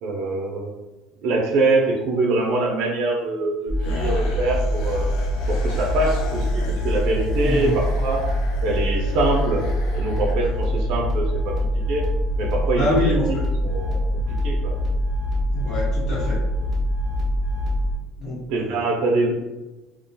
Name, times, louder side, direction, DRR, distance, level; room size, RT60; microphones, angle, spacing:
voice 1, 0.0-0.7 1.2-5.1 5.5-8.2 8.6-9.6 9.9-11.5 11.9-12.0 12.4-13.1 13.6-14.0 14.4-14.7 18.5-19.3, right 2 dB, 60° right, -1 dB, 0.4 m, -24 dB
sound 1, 3.7-18.0, left 1 dB, ahead, 0.8 m, -24 dB
sound 2, 3.8-11.0, left 3 dB, 70° left, 0.4 m, -39 dB
voice 2, 7.4-7.8 12.7-13.4 15.5-16.4 18.2-18.8, left 1 dB, 50° left, -7 dB, 0.9 m, -25 dB
2.3 x 2.1 x 2.6 m, 1.1 s
cardioid pair, 155°, 0 cm